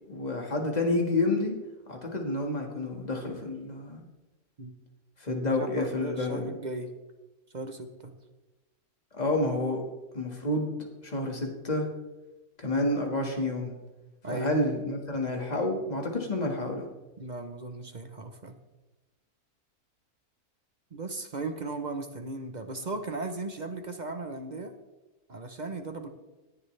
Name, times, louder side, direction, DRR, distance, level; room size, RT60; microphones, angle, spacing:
voice 1, 0.1-1.6 1.9-4.0 5.2-6.5 9.1-9.8 10.1-11.9 12.6-13.7 14.3-16.9, left 2 dB, 30° left, 2 dB, 1.8 m, -29 dB
voice 2, 5.3-6.9 7.5-8.1 14.2-14.5 17.2-18.5 20.9-24.7 25.3-26.1, right 2 dB, 35° right, 7 dB, 0.8 m, -37 dB
17.5 x 9.6 x 3.3 m, 1.1 s
omnidirectional pair, 1.6 m